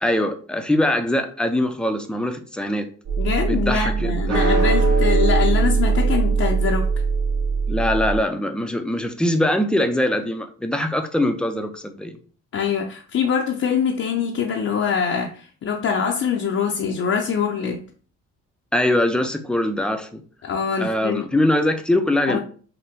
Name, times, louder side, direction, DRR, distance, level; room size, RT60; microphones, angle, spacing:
voice 1, 0.0-2.9 3.5-4.4 7.7-12.2 18.7-20.2 20.8-22.4, left 1 dB, 5° left, 0.6 m, -22 dB
sound 1, 3.0-8.2, right 4 dB, 55° right, 1.3 m, -20 dB
voice 2, 3.2-6.8 12.5-17.8 20.4-21.2 22.3-22.4, left 7 dB, 50° left, 0.7 m, -24 dB
5.7 x 2.2 x 3.5 m
cardioid pair, 90°, 30 cm